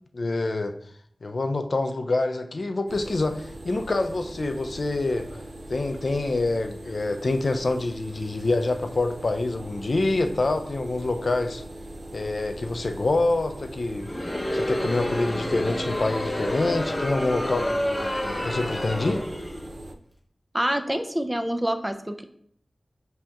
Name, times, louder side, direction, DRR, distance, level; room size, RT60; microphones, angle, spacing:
voice 1, 0.1-0.7 1.2-5.3 5.7-11.6 12.1-14.1 14.5-19.2, left 2 dB, 60° left, 7 dB, 0.3 m, -26 dB
sound 1, 2.9-19.9, right 1 dB, 75° right, 0.4 m, -41 dB
Crowd, 14.0-19.7, left 1 dB, 30° left, 0.7 m, -29 dB
voice 2, 20.5-22.2, equal, 15° right, 6 dB, 0.4 m, -26 dB
7.4 x 2.8 x 2.3 m, 0.65 s
wide cardioid pair, 85°, 0 cm